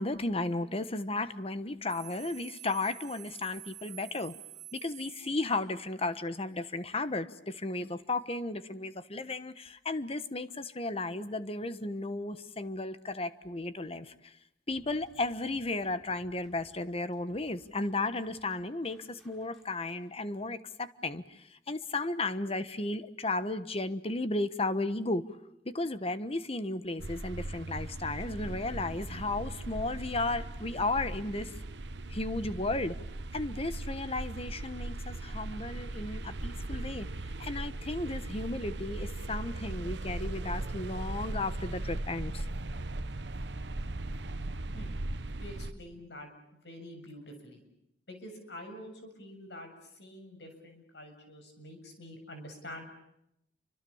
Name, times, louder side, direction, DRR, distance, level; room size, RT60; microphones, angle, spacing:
voice 1, 0.0-4.3 4.7-14.3 14.7-25.2 25.6-31.5 32.1-33.0 33.3-37.1 37.4-42.5, left 2 dB, 30° left, 12 dB, 1.3 m, -34 dB
sound 1, 1.9-5.9, right 16 dB, 40° right, 2.1 m, -49 dB
sound 2, 14.7-20.2, equal, ahead, 7.3 m, -63 dB
sound 3, 27.0-45.7, right 2 dB, 65° right, 1.0 m, -38 dB
voice 2, 45.4-46.3 46.6-47.6 48.1-52.8, left 1 dB, 65° left, 5 dB, 7.3 m, -47 dB
30.0 x 25.5 x 7.2 m, 0.81 s
head